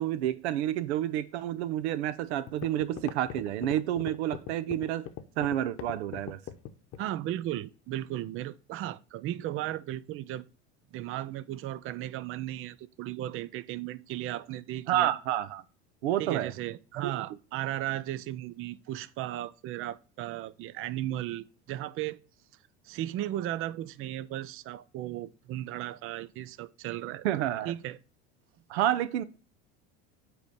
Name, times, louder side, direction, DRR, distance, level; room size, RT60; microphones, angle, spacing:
voice 1, 0.0-5.1 5.4-6.4 14.9-15.6 16.0-16.5 17.0-17.1 27.2-27.7 28.7-29.2, right 12 dB, 80° right, 0.7 m, -29 dB
sound 1, 2.0-2.1 2.5-7.1, left 11 dB, 45° left, 0.8 m, -40 dB
voice 2, 7.0-10.5 10.9-15.1 16.2-22.2 22.8-28.0, right 13 dB, 40° right, 0.5 m, -36 dB
8.3 x 3.1 x 6.4 m
supercardioid pair, 105°, 33 cm